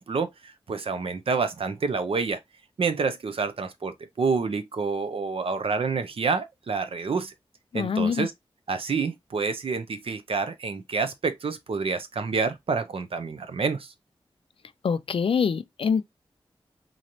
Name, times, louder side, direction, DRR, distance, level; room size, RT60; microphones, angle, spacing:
voice 1, 0.0-2.4 2.8-7.3 7.7-8.3 8.7-13.9, right 4 dB, 75° right, 0.7 m, -28 dB
voice 2, 7.7-8.3 14.8-16.1, left 6 dB, 70° left, 0.4 m, -25 dB
3.9 x 3.1 x 2.7 m
wide cardioid pair, 105°, 10 cm